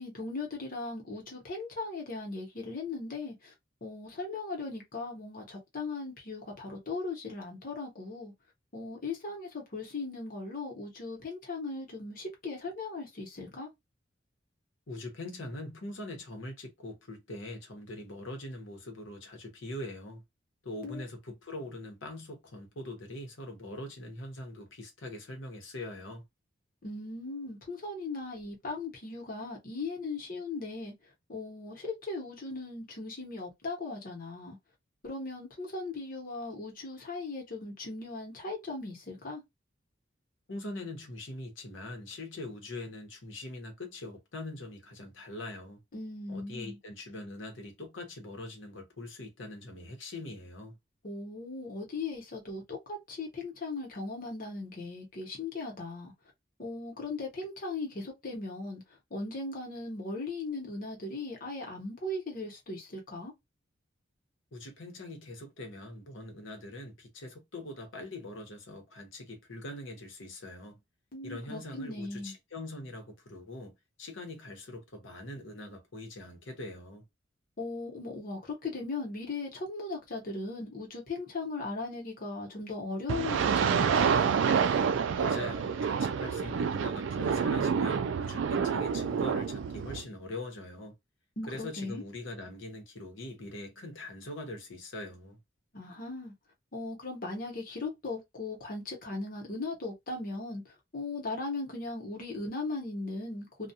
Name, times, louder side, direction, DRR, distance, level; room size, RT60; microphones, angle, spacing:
voice 1, 0.0-3.5 3.8-8.3 8.7-13.7 20.8-21.0 26.8-30.9 31.3-34.6 35.0-39.4 45.9-46.8 51.0-56.1 56.6-58.8 59.1-63.3 71.1-72.3 77.6-84.1 91.4-92.0 95.7-96.3 96.7-100.6 100.9-103.7, left 3 dB, 45° left, 1.0 m, -38 dB
voice 2, 14.9-20.2 20.6-26.2 40.5-45.8 46.3-50.8 64.5-70.8 71.2-73.7 74.0-77.1 85.1-90.9 91.5-95.4, left 1 dB, 90° left, 1.0 m, -42 dB
sound 1, 83.1-90.0, right 6 dB, 75° right, 0.3 m, -28 dB
2.3 x 2.3 x 2.8 m
head